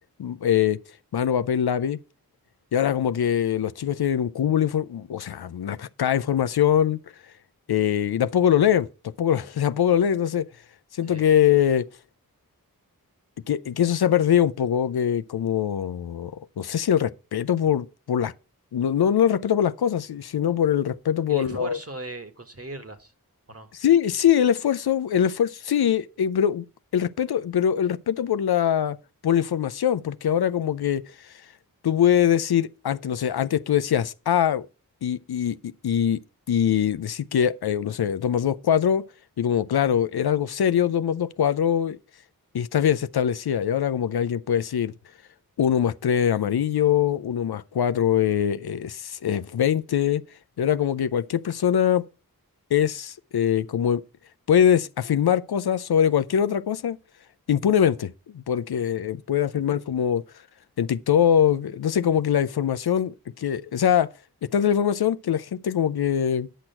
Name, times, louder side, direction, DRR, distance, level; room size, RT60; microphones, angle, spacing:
voice 1, 0.2-0.8 1.1-2.0 2.7-7.0 7.7-10.5 10.9-11.9 13.5-18.3 18.7-21.8 23.7-26.6 26.9-29.0 29.2-31.0 31.8-34.7 35.0-36.2 36.5-39.0 39.4-42.0 42.5-44.9 45.6-50.2 50.6-52.0 52.7-54.0 54.5-57.0 57.5-60.2 60.8-64.1 64.4-66.5, left 9 dB, 85° left, 0.5 m, -23 dB
voice 2, 21.3-23.1 23.5-23.7, right 2 dB, 40° right, 1.7 m, -38 dB
10.0 x 6.2 x 5.7 m
cardioid pair, 40°, 37 cm